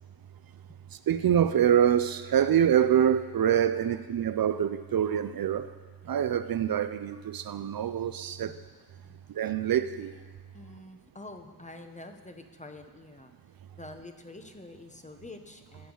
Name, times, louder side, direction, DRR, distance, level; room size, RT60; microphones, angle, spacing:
voice 1, 0.9-5.7 6.0-8.5 9.3-10.1, right 9 dB, 65° right, 13 dB, 0.5 m, -25 dB
voice 2, 10.5-13.3 13.7-15.9, left 2 dB, 20° left, 6 dB, 0.8 m, -47 dB
17.5 x 6.8 x 3.9 m, 1.4 s
wide cardioid pair, 110°, 38 cm